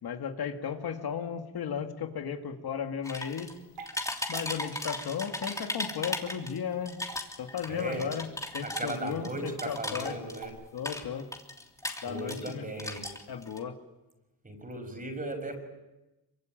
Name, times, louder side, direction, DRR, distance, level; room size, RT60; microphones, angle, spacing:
voice 1, 0.0-3.5 4.3-7.0 7.4-8.3 8.5-10.2 10.7-11.3 12.0-12.7 13.3-13.7, left 7 dB, 70° left, 5 dB, 2.3 m, -35 dB
sound 1, 3.0-3.6 3.9-6.6 6.9-10.5 10.8-12.5 12.8-13.6, left 1 dB, 10° left, 3.1 m, -36 dB
Water / Drip, 3.5-10.5, right 5 dB, 80° right, 5.8 m, -50 dB
voice 2, 7.7-8.1 8.6-10.6 12.0-13.1 14.4-15.6, right 2 dB, 20° right, 5 dB, 5.9 m, -37 dB
26.5 x 24.5 x 9.1 m, 1.0 s
wide cardioid pair, 135°, 39 cm